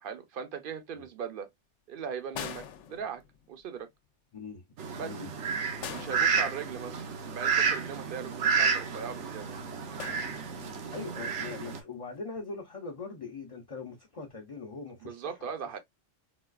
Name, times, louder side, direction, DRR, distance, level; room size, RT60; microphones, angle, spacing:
voice 1, 0.0-1.5 1.9-3.2 3.5-3.9 5.0-5.3 5.9-7.0 7.3-9.5 15.0-15.8, right 7 dB, 55° right, 0.8 m, -39 dB
sound 1, 2.3-3.6 5.8-7.0 10.0-10.9 12.2-12.4, left 9 dB, 75° left, 0.9 m, -43 dB
voice 2, 4.3-4.6 5.0-5.3 10.6-15.5, left 4 dB, 35° left, 0.6 m, -41 dB
Fowl, 4.8-11.8, right 6 dB, 75° right, 1.0 m, -31 dB
3.8 x 2.4 x 2.3 m
omnidirectional pair, 1.2 m